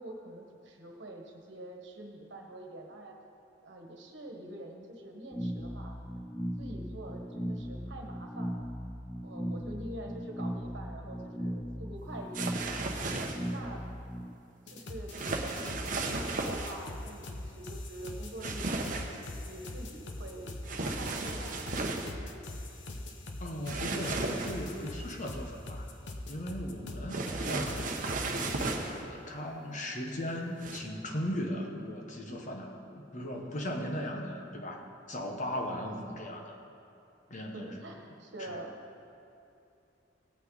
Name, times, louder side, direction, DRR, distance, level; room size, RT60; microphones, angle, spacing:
voice 1, 0.0-3.2 3.6-6.0 6.6-8.7 9.2-12.5 13.5-13.8 14.7-19.0 19.3-21.9 36.0-36.3 37.5-38.7, right 1 dB, 70° right, 1 dB, 1.4 m, -45 dB
sound 1, 5.3-14.3, equal, 10° left, 0.5 m, -38 dB
sound 2, 12.3-13.6 15.1-16.8 18.4-19.2 20.6-22.1 23.7-24.8 27.1-29.0 30.6-30.8, right 3 dB, 45° right, 0.9 m, -35 dB
sound 3, 14.7-28.7, left 1 dB, 70° left, 0.9 m, -42 dB
voice 2, 23.4-25.9 26.3-27.8 28.4-36.6 37.3-37.8 38.4-38.6, equal, 40° left, 2 dB, 1.2 m, -38 dB
16.5 x 8.7 x 4.0 m, 2.8 s
head